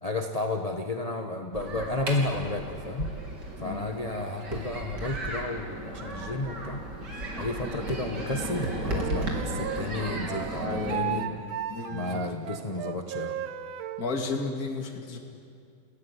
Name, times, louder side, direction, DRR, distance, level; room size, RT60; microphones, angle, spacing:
voice 1, 0.0-3.1 3.6-6.8 7.4-11.3 11.9-13.4, left 2 dB, 25° left, 4 dB, 0.9 m, -32 dB
sound 1, 1.5-10.9, right 1 dB, 50° right, 3.9 m, -35 dB
Wind instrument woodwind instrument, 9.0-14.1, right 10 dB, 75° right, 1.6 m, -35 dB
voice 2, 10.6-11.4 11.7-12.3 14.0-15.2, left 4 dB, 45° left, 2 dB, 2.7 m, -33 dB
28.0 x 17.0 x 9.7 m, 2.4 s
omnidirectional pair, 2.3 m